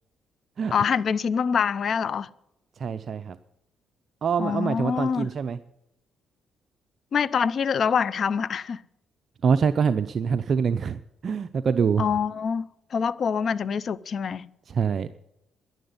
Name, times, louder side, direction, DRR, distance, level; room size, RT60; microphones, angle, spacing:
voice 1, 0.7-2.3 4.4-5.3 7.1-8.8 12.0-14.5, left 6 dB, 55° left, 0.6 m, -25 dB
voice 2, 2.8-3.4 4.2-5.6 9.4-12.0 14.7-15.2, right 6 dB, 50° right, 0.6 m, -25 dB
11.0 x 11.0 x 9.5 m
cardioid pair, 90°, 0 cm